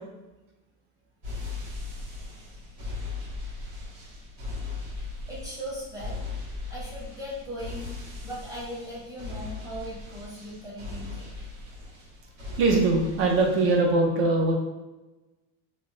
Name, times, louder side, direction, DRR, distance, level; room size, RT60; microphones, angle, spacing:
sound 1, 1.2-13.7, left 3 dB, 90° right, 1.5 m, -38 dB
voice 1, 5.3-6.2 6.7-8.0 8.2-11.3, equal, 10° right, -8 dB, 0.8 m, -38 dB
voice 2, 12.6-14.5, right 3 dB, 35° right, 1 dB, 0.4 m, -22 dB
2.5 x 2.4 x 3.2 m, 1.1 s
cardioid pair, 170°, 39 cm